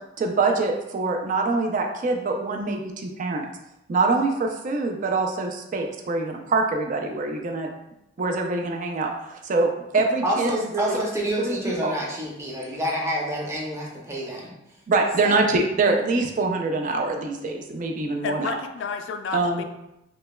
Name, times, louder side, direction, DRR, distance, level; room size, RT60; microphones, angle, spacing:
voice 1, 0.2-3.5 3.9-7.7 8.2-11.0 11.4-11.9 14.9-18.6 19.3-19.6, right 3 dB, 45° right, 3 dB, 0.4 m, -24 dB
voice 2, 10.2-14.5 15.2-15.4, equal, 15° right, -3 dB, 0.7 m, -28 dB
voice 3, 18.2-19.6, left 5 dB, 75° left, 7 dB, 0.3 m, -31 dB
5.0 x 2.1 x 2.2 m, 0.85 s
head